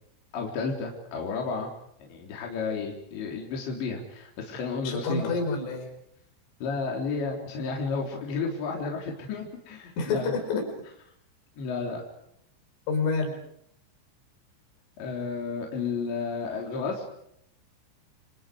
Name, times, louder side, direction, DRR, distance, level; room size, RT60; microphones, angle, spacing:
voice 1, 0.3-1.7 2.0-5.4 6.6-10.3 11.6-12.0 15.0-17.1, left 4 dB, 65° left, 0 dB, 5.8 m, -32 dB
voice 2, 4.9-5.9 10.0-10.6 12.9-13.4, left 4 dB, 80° left, 5 dB, 7.5 m, -28 dB
29.0 x 27.0 x 5.0 m, 0.74 s
omnidirectional pair, 5.6 m